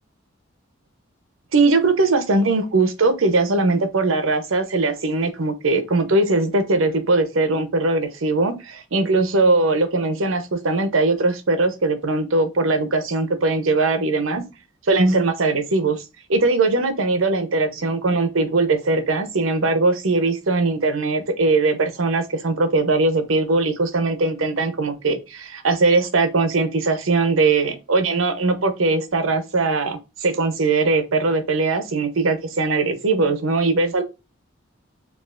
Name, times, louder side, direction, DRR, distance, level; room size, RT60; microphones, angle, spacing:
voice 1, 1.5-14.4 14.9-16.0 16.3-34.0, right 3 dB, 80° right, 0.7 m, -20 dB
7.0 x 2.4 x 2.4 m
head